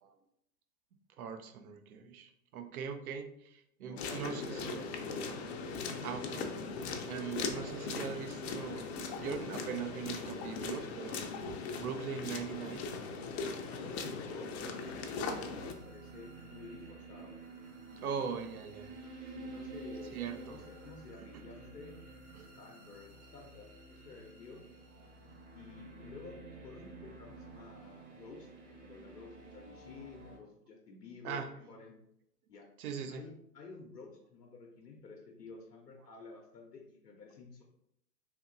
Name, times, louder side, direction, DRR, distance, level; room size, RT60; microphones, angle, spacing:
voice 1, 1.2-4.9 6.0-6.6 7.1-8.9 9.2-11.3 11.8-12.9 18.0-18.9 20.1-20.7 21.2-21.3 22.3-22.5 31.2-31.5 32.8-33.2, right 7 dB, 65° right, 8 dB, 0.6 m, -41 dB
voice 2, 3.9-5.2 13.7-17.4 17.9-18.3 19.2-20.2 20.5-21.9 22.6-24.6 25.5-31.9 32.5-32.7 33.1-37.6, left 4 dB, 85° left, 0 dB, 0.7 m, -51 dB
sound 1, 4.0-15.7, left 4 dB, 45° left, 0.5 m, -39 dB
sound 2, 14.8-30.4, right 3 dB, 20° right, 0.5 m, -51 dB
3.4 x 2.8 x 2.5 m, 0.74 s
figure-of-eight pair, 105°, 47 cm